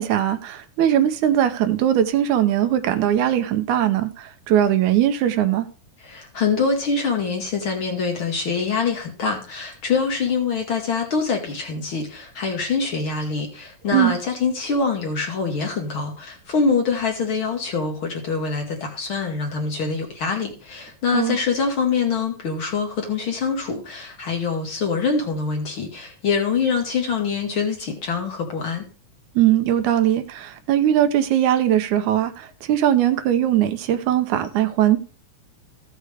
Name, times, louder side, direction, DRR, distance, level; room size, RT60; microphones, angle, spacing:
voice 1, 0.0-5.7 13.9-14.1 21.1-21.4 29.4-35.0, right 11 dB, 80° right, 2.1 m, -20 dB
voice 2, 6.0-28.8, left 5 dB, 50° left, 1.9 m, -24 dB
15.0 x 6.6 x 3.4 m
omnidirectional pair, 3.5 m